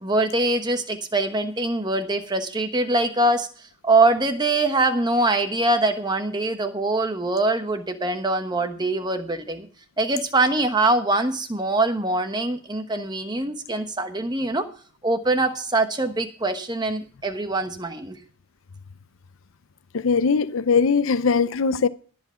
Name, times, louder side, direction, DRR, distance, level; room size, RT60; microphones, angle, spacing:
voice 1, 0.0-9.7 10.0-14.7 15.0-18.2, right 2 dB, 20° right, 1.1 m, -23 dB
voice 2, 19.9-21.9, left 5 dB, 70° left, 0.6 m, -20 dB
14.0 x 7.8 x 5.6 m
head